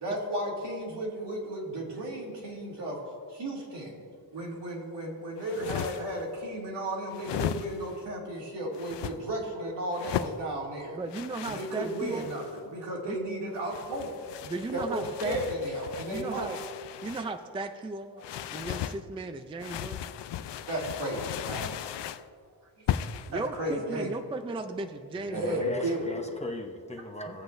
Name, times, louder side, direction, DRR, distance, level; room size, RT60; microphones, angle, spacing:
voice 1, 0.0-3.0 3.3-4.0 4.3-11.0 11.4-14.1 14.7-16.6 18.2-18.3 20.7-21.7 23.3-24.2 25.3-26.2 27.0-27.1, right 1 dB, 75° right, -3 dB, 2.5 m, -34 dB
sound 1, 5.4-6.2 7.1-8.0 8.7-9.2 9.9-10.4 11.1-12.6 13.5-17.3 18.2-19.0 19.6-22.3 22.9-23.3, left 11 dB, 90° left, 0.5 m, -36 dB
voice 2, 10.9-12.3 13.1-13.2 14.4-15.4 16.0-16.6 17.0-18.2 18.5-20.1 23.3-25.6, right 3 dB, 15° right, 7 dB, 0.3 m, -36 dB
voice 3, 25.2-27.4, left 1 dB, 15° left, 2 dB, 0.7 m, -39 dB
20.0 x 7.9 x 2.6 m, 2.2 s
wide cardioid pair, 155°, 41 cm